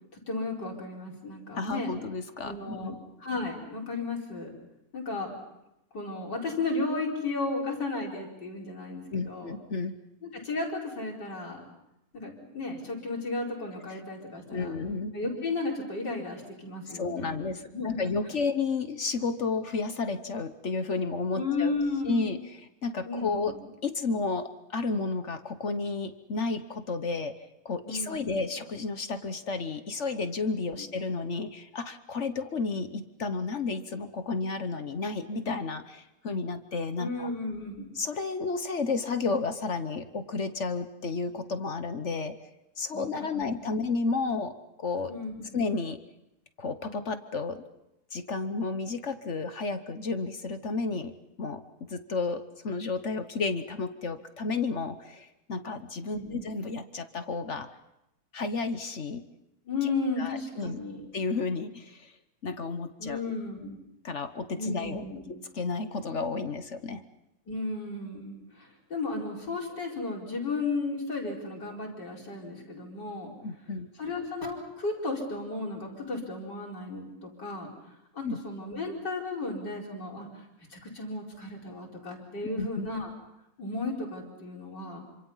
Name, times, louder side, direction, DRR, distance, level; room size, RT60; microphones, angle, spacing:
voice 1, 0.3-1.9 2.4-4.5 4.9-5.4 5.9-9.6 10.2-11.7 12.1-14.8 15.1-18.1 21.3-22.4 23.0-23.6 27.9-28.4 30.8-30.9 37.0-37.9 42.9-43.5 45.1-45.5 56.1-56.5 59.7-61.1 63.0-63.8 64.6-65.3 67.5-73.3 74.0-77.7 78.1-80.4 80.7-83.1 83.6-85.0, left 3 dB, 70° left, -1 dB, 5.2 m, -34 dB
voice 2, 1.5-3.0 9.1-9.9 14.5-15.1 16.9-21.8 22.0-23.5 23.8-27.3 27.6-37.3 37.9-42.3 42.8-44.5 44.8-45.1 45.5-46.0 46.6-47.6 48.1-51.1 51.4-57.7 58.3-59.2 59.8-59.9 60.2-60.8 61.1-62.1 62.4-63.3 64.0-65.0 65.3-67.0 73.4-73.9 78.2-78.4 82.6-82.9, left 4 dB, 45° left, 9 dB, 1.2 m, -32 dB
27.5 x 26.0 x 5.6 m, 0.88 s
omnidirectional pair, 1.9 m